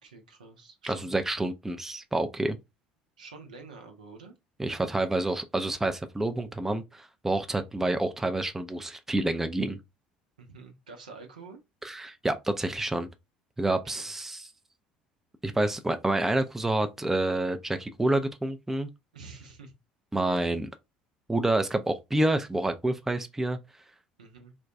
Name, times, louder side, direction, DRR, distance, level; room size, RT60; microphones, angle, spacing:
voice 1, 0.0-1.2 3.2-4.3 10.4-11.6 13.7-14.1 19.1-19.7 24.2-24.5, right 4 dB, 80° right, 0.6 m, -48 dB
voice 2, 0.8-2.6 4.6-9.8 11.8-13.1 13.6-14.5 15.4-18.9 20.1-20.7 21.3-23.6, right 2 dB, 10° right, 0.4 m, -28 dB
3.4 x 2.2 x 2.5 m
figure-of-eight pair, 60°, 4 cm